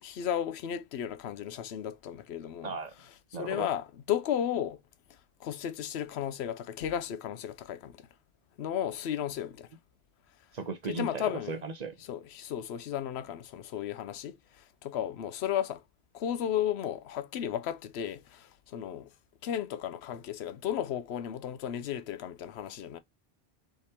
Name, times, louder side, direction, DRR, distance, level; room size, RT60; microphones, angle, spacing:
voice 1, 0.0-2.8 3.4-4.8 5.4-8.1 8.6-9.7 10.9-11.6 12.1-15.8 16.1-19.1 19.4-23.0, left 10 dB, 85° left, 0.9 m, -34 dB
voice 2, 3.3-3.7 10.5-12.0, right 4 dB, 45° right, 0.9 m, -36 dB
3.8 x 3.3 x 4.2 m
omnidirectional pair, 1.1 m